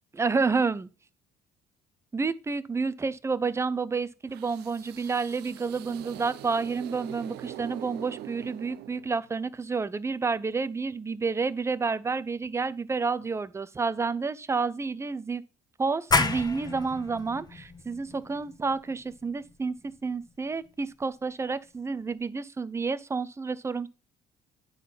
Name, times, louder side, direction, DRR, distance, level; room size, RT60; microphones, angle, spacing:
voice 1, 0.1-0.9 2.1-15.4 15.8-23.9, right 4 dB, 15° right, 0.5 m, -30 dB
sound 1, 4.3-9.4, right 14 dB, 75° right, 0.5 m, -43 dB
sound 2, 16.1-21.5, left 3 dB, 25° left, 0.9 m, -32 dB
9.2 x 3.9 x 5.8 m
cardioid pair, 110°, 17 cm